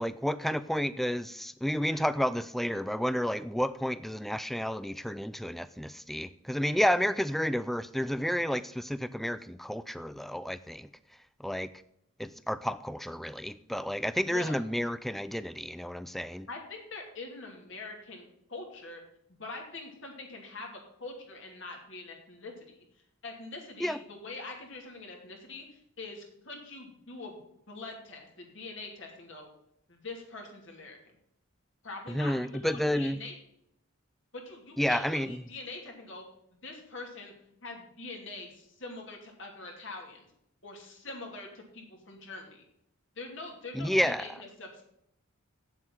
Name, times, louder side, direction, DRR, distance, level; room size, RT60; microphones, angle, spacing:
voice 1, 0.0-10.9 11.4-11.7 12.2-16.5 23.8-24.0 32.1-33.2 34.8-35.4 43.7-44.3, equal, ahead, 15 dB, 0.3 m, -31 dB
voice 2, 14.2-14.5 16.5-19.0 19.3-22.8 23.2-27.4 27.7-29.5 29.9-31.1 31.8-32.3 32.6-33.3 34.3-36.2 36.5-37.3 37.6-40.3 40.6-42.6 43.1-44.8, left 3 dB, 60° left, 1 dB, 2.8 m, -44 dB
8.2 x 7.8 x 7.4 m, 0.76 s
head